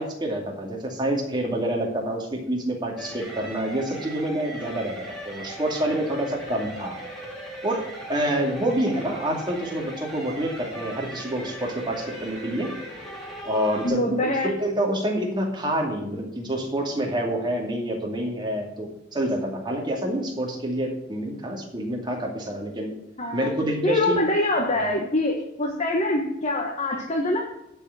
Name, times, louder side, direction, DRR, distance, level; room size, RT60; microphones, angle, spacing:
voice 1, 0.0-7.0 7.6-7.8 8.1-12.7 13.4-22.9 23.3-24.2 24.8-24.9, right 1 dB, 25° right, 0 dB, 2.5 m, -27 dB
sound 1, 3.0-13.9, equal, ahead, 2.8 m, -38 dB
voice 2, 13.8-14.5 23.2-23.5 23.8-27.5, left 1 dB, 35° left, 0 dB, 1.3 m, -24 dB
12.0 x 4.9 x 7.8 m, 0.87 s
head